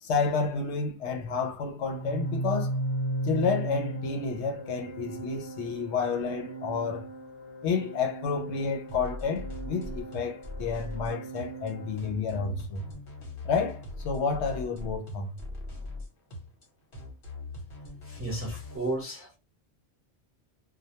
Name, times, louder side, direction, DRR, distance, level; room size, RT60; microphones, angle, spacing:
voice 1, 0.0-2.8 3.2-7.1 7.6-12.9 13.4-15.4, left 5 dB, 80° left, 0.9 m, -30 dB
Organ, 1.8-12.6, right 1 dB, 30° left, 0.8 m, -36 dB
sound 1, 8.9-18.8, left 2 dB, 55° left, 1.0 m, -40 dB
voice 2, 18.0-19.4, right 2 dB, 20° right, 0.3 m, -33 dB
2.2 x 2.1 x 2.8 m
omnidirectional pair, 1.1 m